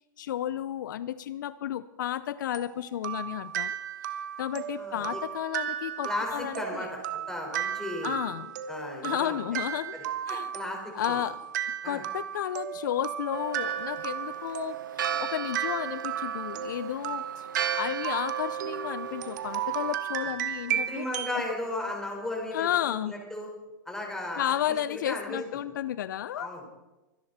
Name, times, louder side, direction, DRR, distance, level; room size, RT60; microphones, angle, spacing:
voice 1, 0.2-3.7 4.4-6.9 8.0-8.5 9.0-9.9 10.3-10.5 10.9-11.4 11.8-14.8 15.2-17.5 17.7-21.0 22.5-23.1 24.3-26.5, left 11 dB, 70° left, 16 dB, 0.5 m, -32 dB
sound 1, 2.5-21.4, right 10 dB, 65° right, 1.3 m, -35 dB
voice 2, 4.8-5.2 6.0-8.2 8.7-9.4 9.9-11.2 11.8-12.0 20.7-22.7 23.0-23.5 23.9-24.5 24.9-25.4 26.4-26.7, left 1 dB, 5° left, 0 dB, 4.9 m, -35 dB
Church bell, 13.3-20.0, right 8 dB, 80° right, 0.9 m, -36 dB
24.5 x 10.5 x 4.3 m, 1.1 s
hypercardioid pair, 115°, 11 cm